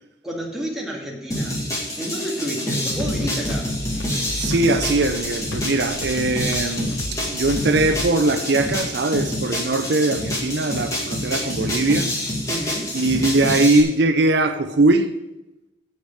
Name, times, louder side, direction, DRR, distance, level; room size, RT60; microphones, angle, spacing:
voice 1, 0.2-1.7 2.0-3.7 12.5-12.9, right 1 dB, ahead, -3 dB, 2.2 m, -30 dB
sound 1, 1.3-13.8, left 1 dB, 15° left, 2.1 m, -27 dB
sound 2, 3.0-8.4, left 1 dB, 80° left, 1.0 m, -33 dB
voice 2, 4.3-12.1 12.9-15.1, right 2 dB, 60° right, 8 dB, 0.6 m, -20 dB
8.0 x 6.6 x 8.2 m, 0.97 s
head